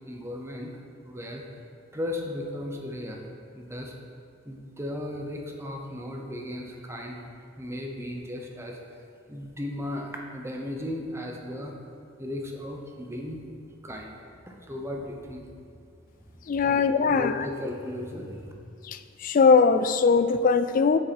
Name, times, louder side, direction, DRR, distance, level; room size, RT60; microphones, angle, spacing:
voice 1, 0.0-1.4 1.9-3.2 3.5-4.0 4.4-7.2 7.6-8.8 9.3-11.7 12.2-13.4 13.8-14.2 14.5-15.4 16.3-18.5, left 1 dB, 15° right, 1 dB, 0.8 m, -36 dB
voice 2, 16.5-17.3 18.9-21.0, left 5 dB, 45° left, 11 dB, 0.3 m, -21 dB
7.6 x 6.8 x 4.2 m, 2.3 s
head